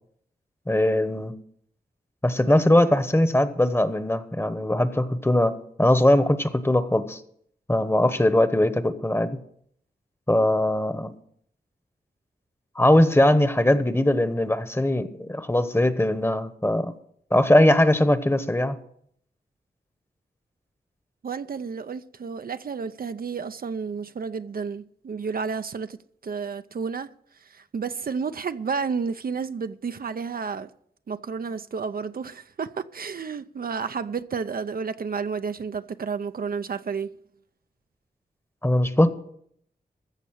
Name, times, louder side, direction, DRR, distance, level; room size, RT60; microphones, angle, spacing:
voice 1, 0.7-1.3 2.2-7.2 7.7-9.4 10.3-11.2 12.8-16.9 17.3-18.8 38.6-39.1, left 1 dB, 15° left, 1.1 m, -21 dB
voice 2, 21.2-26.0 26.2-27.1 27.4-30.7 31.1-37.1, right 5 dB, 60° right, 0.5 m, -31 dB
15.0 x 6.7 x 6.4 m
cardioid pair, 60°, 17 cm